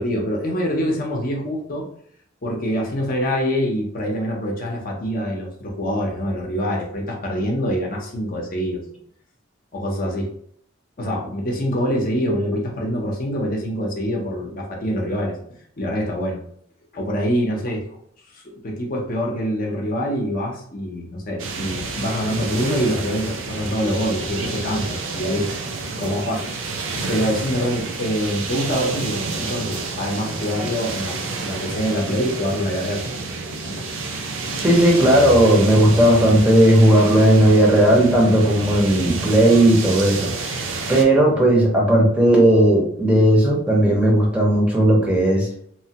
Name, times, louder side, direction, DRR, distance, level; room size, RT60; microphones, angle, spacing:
voice 1, 0.0-1.9 2.4-8.8 9.7-10.3 11.0-15.4 15.8-16.4 16.9-18.0 18.3-25.5 26.0-33.0 33.7-33.8, equal, 45° left, -1 dB, 0.6 m, -25 dB
sound 1, 21.4-41.0, right 3 dB, 90° right, 0.5 m, -29 dB
voice 2, 34.6-40.6 40.9-45.5, right 1 dB, 5° right, -3 dB, 0.7 m, -15 dB
3.0 x 2.1 x 2.8 m, 0.65 s
head